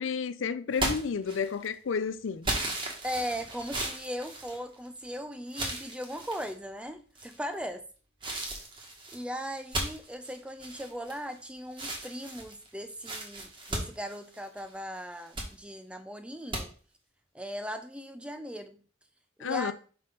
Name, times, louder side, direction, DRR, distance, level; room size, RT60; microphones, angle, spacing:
voice 1, 0.0-2.5 19.4-19.7, left 6 dB, 80° left, 0.5 m, -31 dB
sound 1, 0.7-1.7 2.4-5.1 5.5-6.5 7.1-7.6 8.2-11.4 11.7-14.7 15.1-15.5 16.5-16.6, right 1 dB, 25° right, 1.4 m, -36 dB
voice 2, 3.0-7.9 9.1-16.7 17.3-18.8 19.4-19.7, equal, 5° right, 0.5 m, -38 dB
5.8 x 5.4 x 3.9 m
head